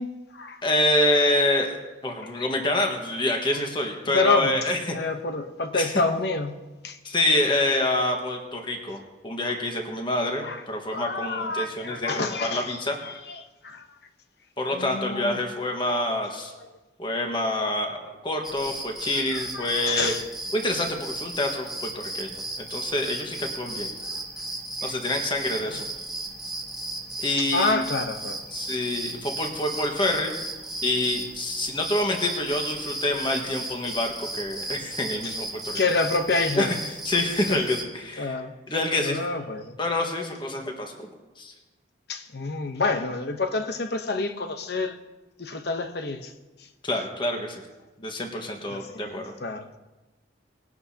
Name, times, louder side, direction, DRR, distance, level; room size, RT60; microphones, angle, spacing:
voice 1, 0.0-0.8 4.1-4.5 4.9-6.6 6.8-7.0 10.4-10.6 10.9-12.8 13.0-13.9 14.7-15.4 15.9-16.1 19.0-20.2 24.1-24.2 24.8-24.9 25.6-25.7 27.4-28.4 35.7-36.8 37.5-37.6 38.2-38.5 39.0-39.7 42.1-45.0 45.4-46.3 48.7-49.7, left 3 dB, 60° left, 0.9 m, -28 dB
voice 2, 0.6-4.9 5.7-5.9 7.0-9.0 9.2-13.0 14.6-16.5 17.0-20.1 20.5-23.9 24.8-25.8 27.2-27.8 28.5-30.3 30.8-35.8 36.6-36.8 37.0-38.4 38.7-39.2 39.8-41.1 41.4-41.5 46.8-47.6 48.0-49.2, left 1 dB, 25° left, 1.5 m, -27 dB
sound 1, 18.4-37.8, right 2 dB, ahead, 1.3 m, -35 dB
20.5 x 11.0 x 2.9 m
head